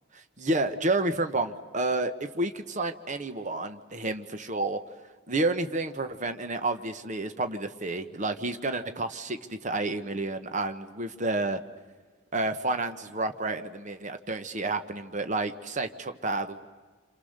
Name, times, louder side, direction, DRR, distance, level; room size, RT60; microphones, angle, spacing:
voice 1, 0.4-11.6 12.3-16.7, right 2 dB, 35° right, 9 dB, 1.0 m, -30 dB
29.0 x 27.0 x 6.6 m, 1.5 s
head